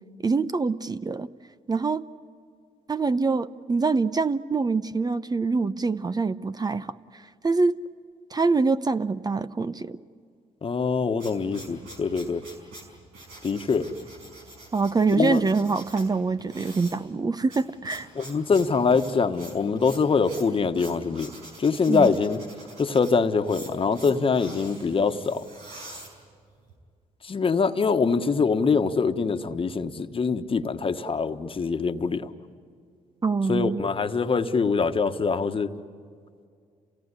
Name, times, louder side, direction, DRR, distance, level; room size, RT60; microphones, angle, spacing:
voice 1, 0.2-1.3 1.7-2.0 2.9-7.8 8.3-10.0 14.7-18.1 21.9-22.1 33.2-33.8, right 4 dB, 30° right, 13 dB, 0.7 m, -25 dB
voice 2, 10.6-12.4 13.4-13.9 15.2-15.4 18.1-21.3 21.6-22.4 22.8-25.4 27.2-32.3 33.5-35.7, left 5 dB, 40° left, 8 dB, 1.4 m, -24 dB
sound 1, 10.8-26.7, right 2 dB, 90° right, 5.1 m, -45 dB
27.5 x 17.5 x 9.9 m, 2.2 s
supercardioid pair, 60°, 14 cm